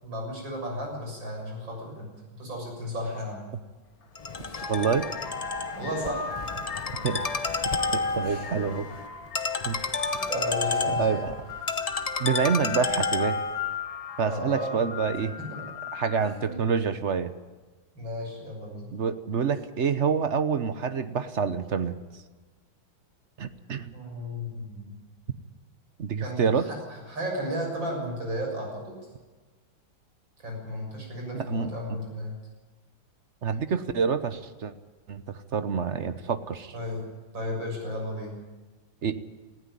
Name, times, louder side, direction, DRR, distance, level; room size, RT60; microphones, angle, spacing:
voice 1, 0.0-3.4 4.4-4.7 5.7-6.3 8.2-8.6 10.1-11.3 14.2-14.7 15.4-15.5 16.2-16.6 17.9-18.9 23.9-24.9 26.2-29.0 30.4-32.3 36.7-37.1 37.3-38.4, equal, 65° right, 0 dB, 7.6 m, -34 dB
sound 1, 3.9-4.1 4.5-16.6, left 6 dB, 70° left, 2.7 m, -38 dB
Ringtone, 4.2-13.7, left 4 dB, 50° left, 0.4 m, -31 dB
voice 2, 4.7-5.0 7.0-7.2 7.9-8.9 9.7-9.8 11.0-11.3 12.2-13.4 14.2-15.4 15.9-17.3 18.9-21.9 23.4-23.9 26.0-26.7 31.3-32.0 33.4-34.7 35.1-36.7 39.0-39.2, right 6 dB, 45° right, 11 dB, 1.0 m, -27 dB
18.5 x 15.5 x 9.9 m, 1.3 s
omnidirectional pair, 2.2 m